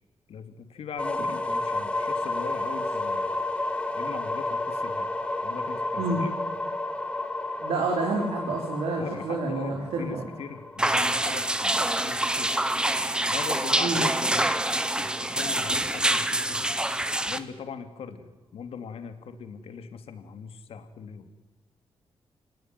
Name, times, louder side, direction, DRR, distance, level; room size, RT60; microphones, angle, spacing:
voice 1, 0.3-3.4 3.9-5.1 5.4-6.3 8.9-12.5 13.3-14.6 15.0-16.8 17.3-21.3, left 6 dB, 75° left, 9 dB, 2.7 m, -40 dB
sound 1, 1.0-12.8, left 2 dB, 10° left, 2.3 m, -31 dB
voice 2, 7.6-10.2 13.8-14.0, right 3 dB, 85° right, 0 dB, 4.5 m, -28 dB
sound 2, 10.8-17.4, right 1 dB, 10° right, 1.2 m, -26 dB
29.5 x 19.0 x 9.7 m, 1.1 s
wide cardioid pair, 140°, 10 cm